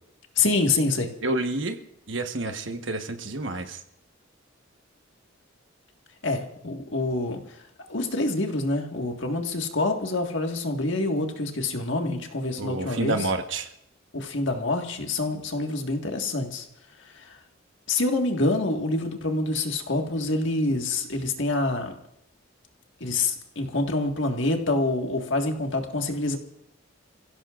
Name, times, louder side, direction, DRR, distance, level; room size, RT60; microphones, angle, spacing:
voice 1, 0.4-1.1 6.2-7.6 7.9-13.2 14.1-16.7 17.1-17.4 17.9-21.9 23.0-26.4, left 2 dB, 65° left, 3 dB, 1.8 m, -26 dB
voice 2, 1.2-1.8 2.1-3.8 12.6-13.7, right 2 dB, 65° right, 6 dB, 1.2 m, -29 dB
29.0 x 16.5 x 2.5 m, 0.80 s
head